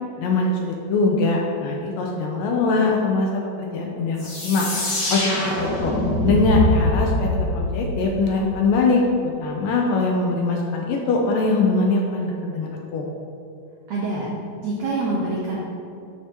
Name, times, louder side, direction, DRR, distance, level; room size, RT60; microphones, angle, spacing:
voice 1, 0.2-4.7 5.1-5.9 6.2-13.1, left 3 dB, 80° left, -1 dB, 2.1 m, -22 dB
sound 1, 4.2-8.8, left 1 dB, 45° left, 1.6 m, -24 dB
voice 2, 13.9-14.3 14.6-15.6, right 2 dB, 80° right, -5 dB, 1.5 m, -25 dB
12.0 x 4.8 x 2.9 m, 2.5 s
omnidirectional pair, 4.4 m